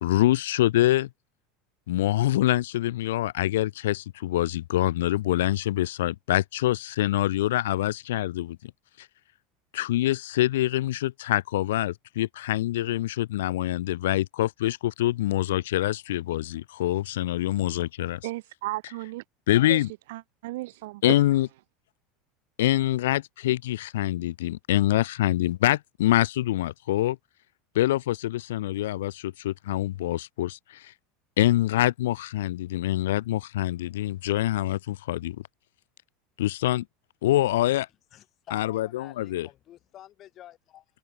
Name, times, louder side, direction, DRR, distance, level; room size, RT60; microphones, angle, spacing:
voice 1, 0.0-1.1 1.9-8.6 9.0-9.1 9.7-18.2 19.5-19.9 21.0-21.5 22.6-27.2 27.7-30.9 31.4-35.4 36.4-36.9 37.2-37.9 38.5-39.5, left 14 dB, 85° left, 0.3 m, -25 dB
voice 2, 18.2-19.2 19.7-19.8 20.1-21.0, right 19 dB, 75° right, 0.7 m, -35 dB
voice 3, 37.4-37.9 38.1-40.8, left 12 dB, 45° left, 3.8 m, -50 dB
supercardioid pair, 105°, 0 cm